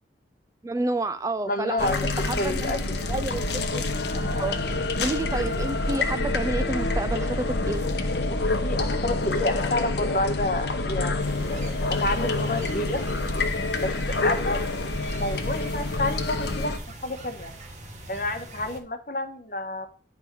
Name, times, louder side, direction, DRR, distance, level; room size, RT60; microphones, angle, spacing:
voice 1, 0.6-2.8 3.1-3.4 3.7-3.8 4.4-4.5 5.0-7.8, right 2 dB, 20° right, 0.3 m, -29 dB
voice 2, 1.5-2.1 2.4-3.0 4.6-4.8 8.3-13.0 13.8-13.9 14.2-14.7 15.1-16.8 17.0-17.5 18.1-19.9, left 1 dB, 50° left, 1.1 m, -29 dB
sound 1, 1.8-16.8, left 2 dB, 75° left, 1.0 m, -27 dB
sound 2, 11.2-18.8, right 2 dB, 40° right, 1.4 m, -42 dB
9.4 x 3.5 x 5.9 m
head